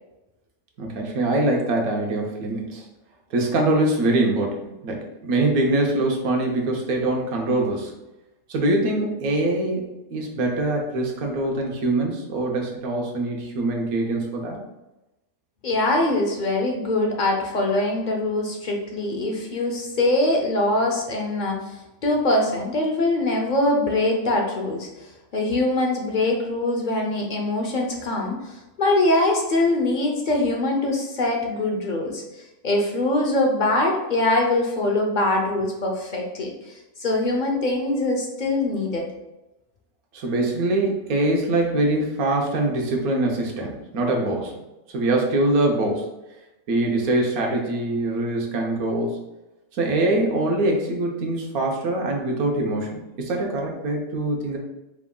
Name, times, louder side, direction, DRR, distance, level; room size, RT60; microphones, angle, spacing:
voice 1, 0.8-2.9 3.3-7.9 8.5-14.6 40.1-44.6 44.9-46.1 46.7-49.2 49.7-54.6, right 2 dB, 75° right, 1 dB, 1.3 m, -23 dB
voice 2, 15.6-25.1 25.3-32.2 32.6-39.1, left 2 dB, 55° left, 1 dB, 0.5 m, -23 dB
4.8 x 3.6 x 2.3 m, 0.98 s
omnidirectional pair, 1.5 m